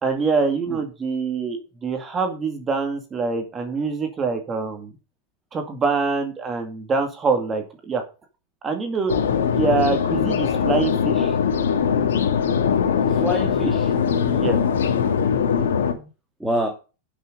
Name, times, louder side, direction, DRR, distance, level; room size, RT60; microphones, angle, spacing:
voice 1, 0.0-4.9 5.5-8.0 8.6-9.1 9.4-11.4 14.2-14.6, right 4 dB, 20° right, 5 dB, 2.3 m, -25 dB
sound 1, 9.1-15.9, left 7 dB, 90° left, 2.5 m, -21 dB
voice 2, 12.9-13.9 15.7-16.1 16.4-16.7, equal, 5° right, 1 dB, 2.1 m, -28 dB
11.0 x 6.5 x 5.2 m, 0.32 s
supercardioid pair, 135°, 0 cm